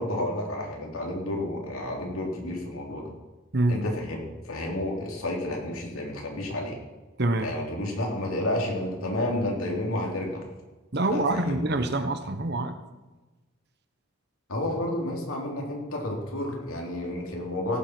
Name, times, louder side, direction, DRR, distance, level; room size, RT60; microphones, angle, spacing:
voice 1, 0.0-3.1 3.7-6.8 7.4-10.4 11.1-11.6 14.5-17.8, left 1 dB, 90° left, 0 dB, 3.3 m, -31 dB
voice 2, 10.9-12.8, right 2 dB, 50° right, 9 dB, 1.1 m, -25 dB
17.0 x 7.7 x 6.0 m, 1.2 s
head